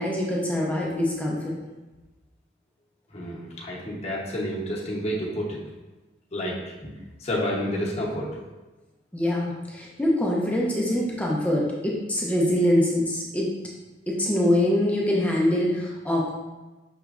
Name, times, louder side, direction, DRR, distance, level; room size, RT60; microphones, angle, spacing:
voice 1, 0.0-1.5 9.1-13.5 14.1-16.3, left 1 dB, 10° left, -3 dB, 0.5 m, -24 dB
voice 2, 3.1-5.6 6.3-6.9 7.2-8.4, equal, 35° left, -4 dB, 0.8 m, -29 dB
5.7 x 3.0 x 2.4 m, 1.2 s
head